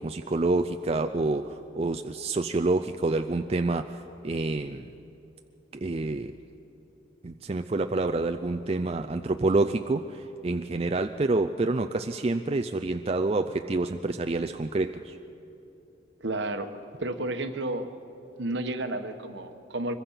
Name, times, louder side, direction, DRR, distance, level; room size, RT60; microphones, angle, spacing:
voice 1, 0.0-4.9 5.7-6.3 7.2-15.2, right 2 dB, 30° right, 6 dB, 0.4 m, -28 dB
voice 2, 16.2-16.7 17.0-17.9 18.4-19.9, right 2 dB, 65° right, 7 dB, 1.2 m, -31 dB
24.5 x 22.0 x 5.7 m, 2.8 s
head